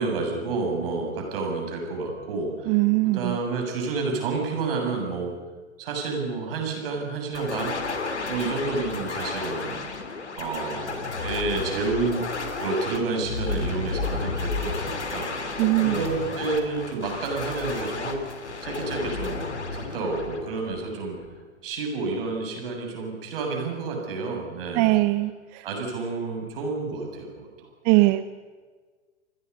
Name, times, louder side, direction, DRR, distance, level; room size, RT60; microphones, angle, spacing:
voice 1, 0.0-2.7 3.0-5.3 5.8-7.7 8.3-9.8 10.4-12.2 12.6-18.2 18.6-19.4 19.7-21.2 21.6-25.0 25.6-27.5 27.9-28.0, right 3 dB, 55° right, 2 dB, 7.2 m, -30 dB
voice 2, 2.7-3.4 15.6-16.1 24.7-25.6 27.8-28.3, right 20 dB, 25° right, 14 dB, 0.6 m, -21 dB
sound 1, 7.3-21.2, left 3 dB, 75° left, 3.0 m, -32 dB
28.5 x 21.0 x 5.5 m, 1.4 s
figure-of-eight pair, 105°, 35 cm